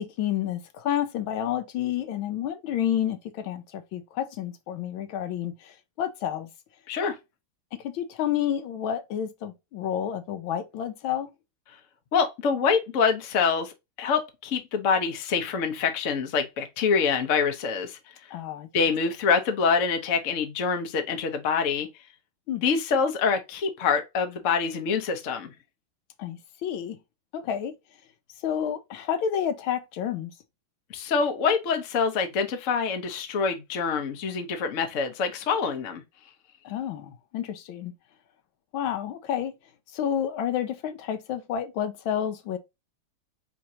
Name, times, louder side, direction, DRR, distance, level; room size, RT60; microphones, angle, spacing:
voice 1, 0.0-6.5 7.7-11.3 18.3-18.7 22.5-22.6 26.2-27.0 27.3-27.7 28.4-30.3 36.6-37.9 38.7-39.6 39.9-42.6, left 10 dB, 75° left, 1.4 m, -30 dB
voice 2, 6.9-7.2 12.1-13.7 14.0-18.0 18.7-21.9 22.6-25.5 30.9-36.0, left 5 dB, 50° left, 1.0 m, -25 dB
4.4 x 3.7 x 2.7 m
omnidirectional pair, 2.3 m